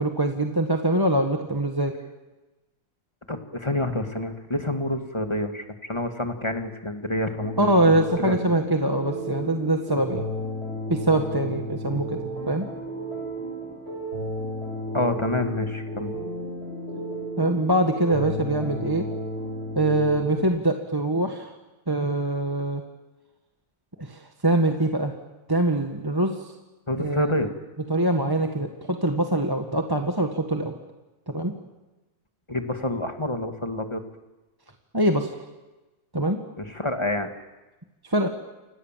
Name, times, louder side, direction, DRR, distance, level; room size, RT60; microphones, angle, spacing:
voice 1, 0.0-1.9 7.6-10.2 10.9-12.2 12.5-12.7 17.4-19.0 19.7-21.5 21.9-22.8 24.0-25.2 25.5-26.4 27.0-27.3 27.9-30.7 31.3-31.5 34.9-35.3 36.1-36.4 38.1-38.3, right 1 dB, 15° right, 4 dB, 1.8 m, -23 dB
voice 2, 3.3-8.5 14.9-16.1 26.9-27.5 32.5-34.0 36.6-37.3, left 1 dB, 20° left, 5 dB, 2.2 m, -28 dB
sound 1, 7.4-20.4, equal, 40° left, 8.0 m, -33 dB
29.5 x 26.5 x 7.6 m, 1.1 s
omnidirectional pair, 1.6 m